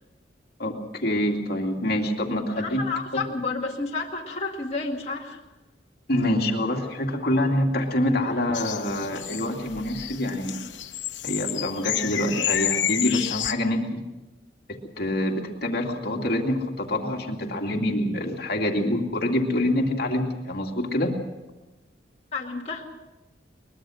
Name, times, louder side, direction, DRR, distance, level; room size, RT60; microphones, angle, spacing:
voice 1, 0.6-2.8 3.1-3.2 6.1-10.6 11.2-14.0 14.7-21.1, left 1 dB, 55° left, 2 dB, 2.4 m, -26 dB
voice 2, 2.6-5.4 22.3-22.9, left 3 dB, 35° left, -2 dB, 2.2 m, -31 dB
sound 1, 8.5-13.5, left 10 dB, 85° left, 1.1 m, -30 dB
23.0 x 21.5 x 6.4 m, 1.0 s
head